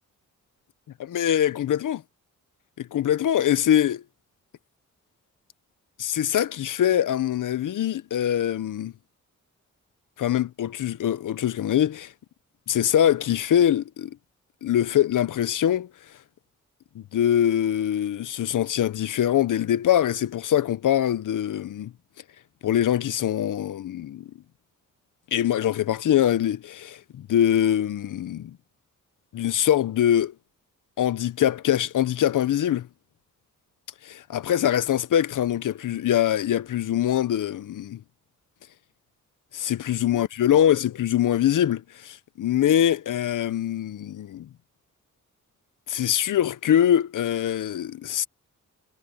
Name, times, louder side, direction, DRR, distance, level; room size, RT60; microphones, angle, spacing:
voice 1, 1.0-2.0 2.8-4.0 6.0-8.9 10.2-12.1 12.7-14.1 14.6-15.9 16.9-21.9 22.6-24.3 25.3-28.6 29.3-30.3 31.0-32.9 34.0-38.0 39.5-44.5 45.9-48.3, left 10 dB, 70° left, 0.8 m, -23 dB
cardioid pair, 75°, 32 cm